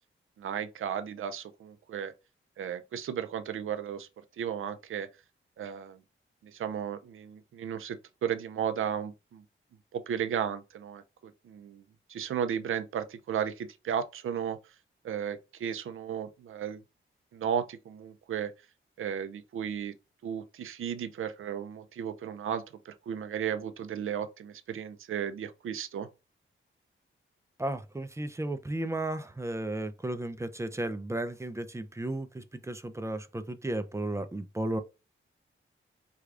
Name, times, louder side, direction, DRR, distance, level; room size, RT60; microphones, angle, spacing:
voice 1, 0.4-2.1 2.6-4.1 4.4-5.1 5.6-6.0 6.4-9.4 9.9-11.8 12.1-14.6 15.0-16.8 17.3-18.5 19.0-19.9 20.2-26.1, right 8 dB, 75° right, 0.5 m, -34 dB
voice 2, 27.6-34.8, right 1 dB, 15° right, 0.4 m, -34 dB
4.7 x 2.3 x 2.4 m
cardioid pair, 85°, 21 cm